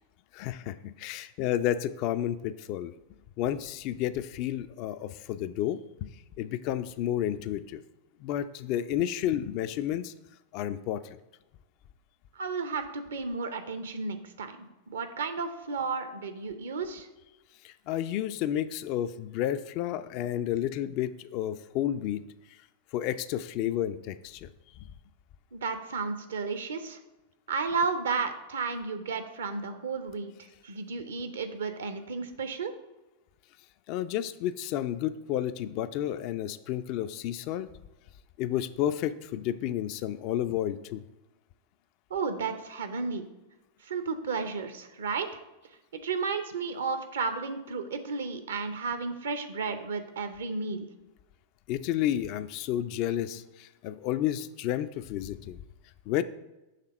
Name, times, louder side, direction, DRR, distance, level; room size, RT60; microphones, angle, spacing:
voice 1, 0.3-2.9 3.4-6.1 6.4-7.8 8.2-10.1 10.5-11.2 17.6-22.2 22.5-22.6 22.9-24.9 33.9-37.7 38.4-41.0 51.7-55.6 56.1-56.2, left 11 dB, 45° left, 12 dB, 0.3 m, -31 dB
voice 2, 12.3-17.1 25.5-27.0 27.5-30.3 30.6-32.7 42.1-43.3 43.8-45.4 46.0-50.9, right 4 dB, 65° right, 8 dB, 0.6 m, -33 dB
6.5 x 3.4 x 5.4 m, 1.0 s
figure-of-eight pair, 90°, 0 cm